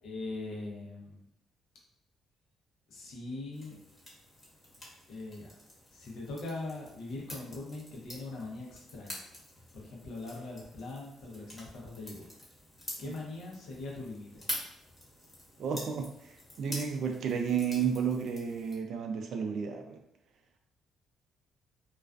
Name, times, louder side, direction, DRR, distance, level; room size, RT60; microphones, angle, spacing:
voice 1, 0.0-1.2 2.9-3.8 5.1-5.6 5.9-9.3 9.7-12.3 13.0-14.5, left 2 dB, 75° left, -1 dB, 0.7 m, -41 dB
sound 1, 3.5-18.8, left 1 dB, 15° left, 1.0 m, -47 dB
voice 2, 15.6-20.0, right 7 dB, 70° right, 4 dB, 0.3 m, -32 dB
2.3 x 2.2 x 2.4 m, 0.77 s
cardioid pair, 90°, 0 cm